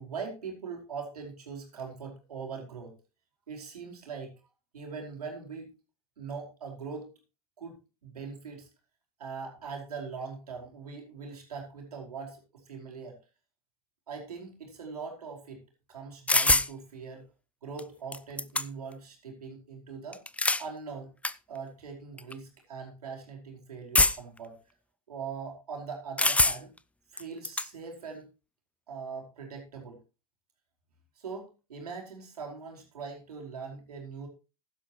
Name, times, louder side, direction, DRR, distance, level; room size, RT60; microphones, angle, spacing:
voice 1, 0.0-2.9 3.5-4.3 4.7-5.7 6.2-7.1 7.6-8.7 9.2-13.2 14.1-15.6 15.9-17.2 17.6-20.2 20.6-21.1 21.5-24.5 25.1-26.7 27.1-28.3 28.9-30.0 31.2-34.3, right 5 dB, 85° right, 1 dB, 4.9 m, -41 dB
sound 1, 16.3-16.7 17.8-17.9 18.1-18.9 20.1-20.7 21.2-21.3 22.2-22.3 23.9-24.4 26.2-26.8 27.2-27.7, left 2 dB, 5° left, 0.6 m, -24 dB
15.5 x 11.5 x 3.0 m, 0.30 s
hypercardioid pair, 85°, 19 cm